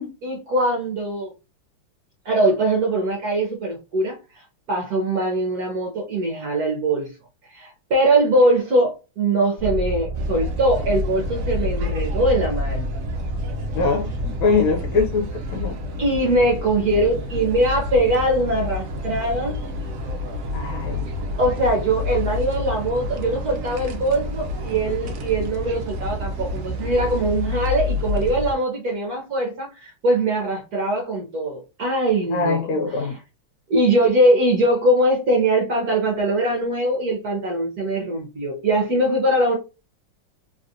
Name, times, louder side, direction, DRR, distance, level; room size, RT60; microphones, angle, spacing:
voice 1, 0.2-1.3 2.2-7.1 7.5-12.9 16.0-19.6 21.4-32.7 33.0-33.2 33.7-39.6, right 1 dB, 60° right, 1.1 m, -22 dB
sound 1, 9.6-16.8, equal, 35° right, 1.3 m, -29 dB
sound 2, 10.1-28.5, left 2 dB, 75° right, 0.7 m, -29 dB
voice 2, 13.7-15.8 20.5-21.1 32.3-33.2, left 4 dB, 80° left, 1.4 m, -23 dB
3.4 x 2.4 x 2.6 m
omnidirectional pair, 2.3 m